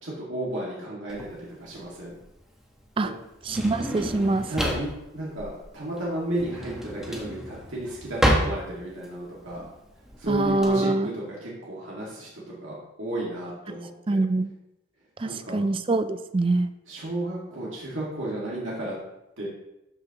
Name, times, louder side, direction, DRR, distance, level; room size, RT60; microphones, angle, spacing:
voice 1, 0.0-2.1 3.0-3.1 4.5-9.7 10.2-14.2 15.2-15.6 16.9-18.9 19.4-19.5, right 1 dB, 65° right, -6 dB, 1.9 m, -33 dB
Drawer open or close, 1.1-10.7, equal, ahead, 1.0 m, -30 dB
voice 2, 3.5-4.5 10.3-11.1 14.1-14.5 15.2-16.7, right 2 dB, 25° right, 12 dB, 0.3 m, -24 dB
12.5 x 5.3 x 2.9 m, 0.92 s
head